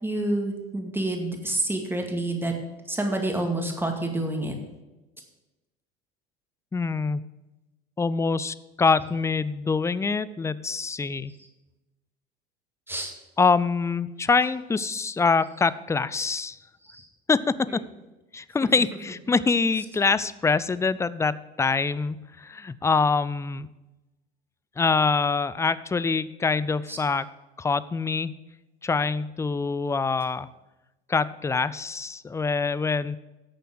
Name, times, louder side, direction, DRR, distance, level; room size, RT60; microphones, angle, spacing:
voice 1, 0.0-2.5 2.9-4.6 12.9-13.1 16.8-17.1 17.7-17.8 18.6-18.7 26.9-27.0, right 1 dB, 5° right, 2 dB, 2.1 m, -28 dB
voice 2, 6.7-7.2 8.0-11.3 13.4-16.6 17.3-17.8 18.3-23.7 24.8-27.3 27.6-28.4 28.8-30.5 31.1-33.2, left 4 dB, 10° left, 17 dB, 0.4 m, -25 dB
11.0 x 6.8 x 6.2 m, 1.0 s
hypercardioid pair, 75°, 30 cm